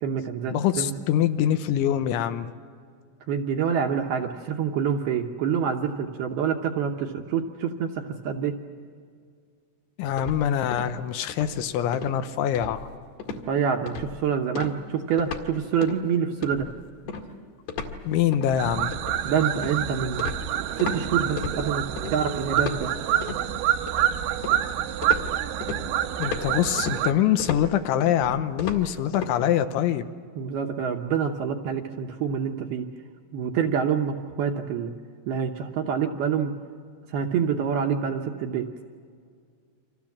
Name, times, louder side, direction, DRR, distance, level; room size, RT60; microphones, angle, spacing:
voice 1, 0.0-0.9 3.3-8.6 13.5-16.7 19.2-20.3 20.8-21.8 22.1-22.9 30.4-32.9 33.3-34.9 35.3-36.5 37.1-38.7, right 7 dB, 70° right, 3 dB, 2.5 m, -26 dB
voice 2, 0.5-2.5 10.0-12.9 18.1-18.9 26.2-30.1, left 10 dB, 75° left, 9 dB, 3.2 m, -24 dB
sound 1, 10.2-11.0 11.3-11.6 11.9-12.2 12.6-13.0 13.2-13.5 13.9-14.2 14.6-15.5 15.8-16.0 16.4-21.0 21.4-22.2 22.6-23.4 23.9-24.7 25.0-29.3, left 5 dB, 60° left, 3.6 m, -35 dB
sound 2, 18.6-27.1, right 12 dB, 85° right, 3.6 m, -27 dB
29.5 x 26.0 x 7.4 m, 2.1 s
omnidirectional pair, 5.7 m